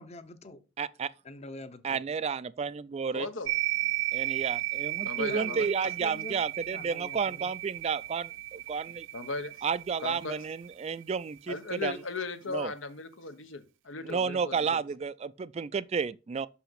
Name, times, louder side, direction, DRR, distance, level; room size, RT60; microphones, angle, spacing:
voice 1, 0.0-0.6 1.2-2.0 5.2-6.4 6.7-7.5, left 2 dB, 35° left, 0.7 m, -45 dB
voice 2, 0.8-1.1 1.8-3.3 4.1-9.1 9.6-12.0 12.5-12.7 14.0-16.5, right 5 dB, 35° right, 0.3 m, -32 dB
voice 3, 3.1-3.5 5.0-5.7 9.1-9.5 10.0-10.4 11.5-14.8, left 4 dB, 90° left, 1.1 m, -37 dB
sound 1, 3.5-11.2, right 18 dB, 85° right, 0.5 m, -34 dB
6.2 x 5.7 x 5.7 m
head